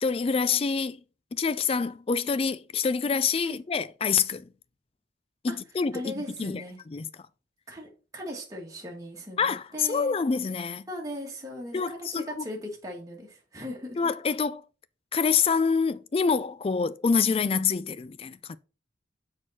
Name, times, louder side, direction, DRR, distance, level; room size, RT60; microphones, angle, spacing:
voice 1, 0.0-1.0 1.3-4.5 5.4-6.1 6.4-7.1 9.4-10.9 11.7-12.4 14.0-14.6 15.1-18.6, left 5 dB, 30° left, 0.3 m, -26 dB
voice 2, 5.9-6.8 7.7-10.2 10.9-14.0, equal, 20° right, 1.8 m, -38 dB
6.3 x 4.6 x 4.2 m
head